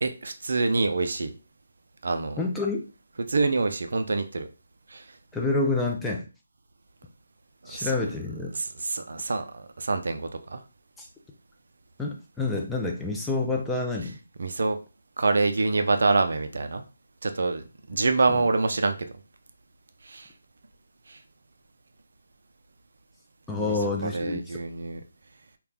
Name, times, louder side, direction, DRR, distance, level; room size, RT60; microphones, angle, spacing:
voice 1, 0.0-1.3 2.0-2.4 3.3-4.5 4.9-5.0 7.6-7.9 8.5-10.6 14.4-14.8 15.2-16.8 17.2-19.0 20.1-20.3 21.1-21.2 23.6-23.8 24.0-25.0, right 3 dB, 65° right, 8 dB, 0.4 m, -26 dB
voice 2, 2.4-2.8 5.3-6.3 7.7-8.5 11.0-11.1 12.0-14.2 23.5-24.6, left 3 dB, 5° left, -1 dB, 0.4 m, -28 dB
2.3 x 2.2 x 3.3 m, 0.33 s
figure-of-eight pair, 155°, 0 cm